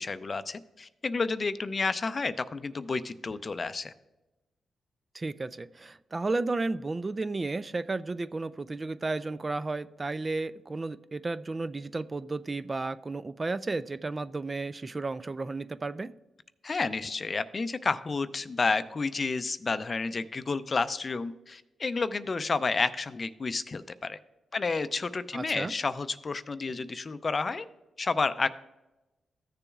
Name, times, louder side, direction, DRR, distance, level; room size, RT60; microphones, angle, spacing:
voice 1, 0.0-3.9 16.6-24.2 24.5-27.7 28.0-28.5, left 4 dB, 40° left, 13 dB, 0.5 m, -30 dB
voice 2, 5.1-16.1 25.3-25.7, right 3 dB, 30° right, 14 dB, 0.3 m, -33 dB
14.5 x 6.8 x 2.4 m, 1.0 s
cardioid pair, 70°, 0 cm